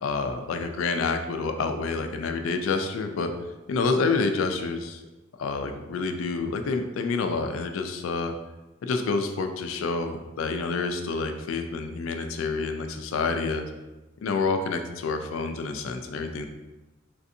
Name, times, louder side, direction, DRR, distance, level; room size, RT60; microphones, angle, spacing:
voice 1, 0.0-3.3 3.7-5.0 5.4-8.3 8.8-13.7 14.2-16.5, left 4 dB, 85° left, 6 dB, 0.3 m, -28 dB
3.2 x 2.6 x 2.6 m, 1.1 s
head